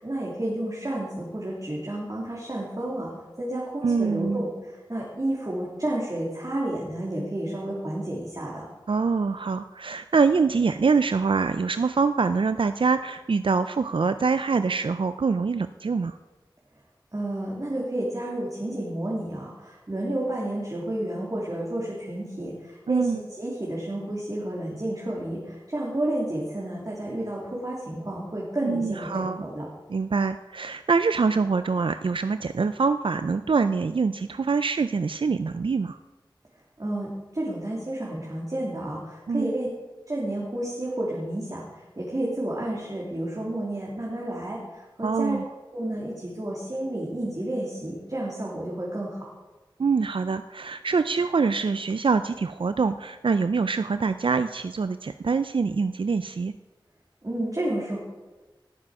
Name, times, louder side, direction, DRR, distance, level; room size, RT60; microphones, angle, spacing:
voice 1, 0.0-3.1 3.4-8.7 17.1-29.7 36.8-39.7 40.1-45.4 45.7-49.2 57.2-58.0, right 1 dB, 45° right, -5 dB, 2.8 m, -31 dB
voice 2, 3.8-4.4 8.9-16.2 22.9-23.2 28.6-29.4 29.9-36.0 39.3-39.5 45.0-45.4 49.8-56.5, right 4 dB, 80° right, 11 dB, 0.4 m, -24 dB
18.5 x 7.4 x 4.8 m, 1.2 s
wide cardioid pair, 45°, 9 cm